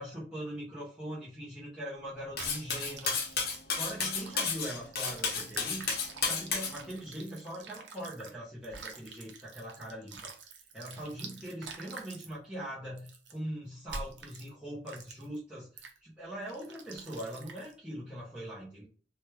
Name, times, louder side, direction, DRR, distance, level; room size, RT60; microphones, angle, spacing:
voice 1, 0.0-3.2 3.7-5.8 6.2-10.3 10.7-18.8, equal, 5° right, -9 dB, 0.8 m, -41 dB
Cutlery silverware, 2.4-6.7, left 5 dB, 55° left, 0.7 m, -32 dB
sound 1, 2.4-8.3 8.6-12.3 13.0-13.3 13.9-14.5 14.9-15.4 15.8-16.0 16.5-17.7, right 4 dB, 75° right, 0.6 m, -47 dB
3.1 x 2.2 x 3.0 m, 0.41 s
head